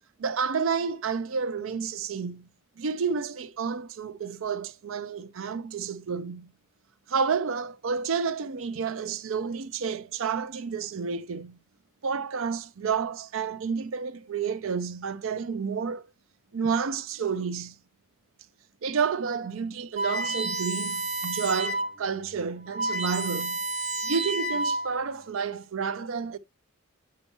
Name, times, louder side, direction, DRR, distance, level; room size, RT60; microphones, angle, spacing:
voice 1, 0.2-2.5 2.8-6.5 7.1-11.6 12.0-16.1 16.5-17.8 18.8-26.4, right 6 dB, 75° right, 0.5 m, -30 dB
sound 1, 20.0-22.0 22.3-22.4 22.6-25.1, right 2 dB, 30° right, 0.6 m, -30 dB
8.6 x 5.3 x 2.9 m
head